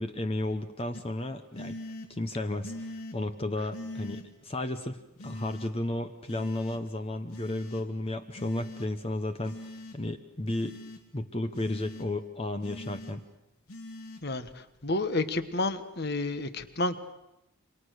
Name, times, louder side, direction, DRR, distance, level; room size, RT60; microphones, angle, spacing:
voice 1, 0.0-1.8 2.1-10.8 11.1-13.3, left 1 dB, 25° left, 8 dB, 0.9 m, -33 dB
sound 1, 0.9-1.0 1.5-2.1 2.6-3.2 3.7-4.2 5.2-5.7 6.3-6.8 7.3-7.8 8.4-8.9 9.4-10.0 10.5-11.0 11.5-12.1 12.6-13.1 13.7-14.2, left 1 dB, 85° left, 2.9 m, -42 dB
voice 2, 14.8-17.0, left 2 dB, 45° left, 11 dB, 1.4 m, -30 dB
28.5 x 24.5 x 6.5 m, 0.92 s
head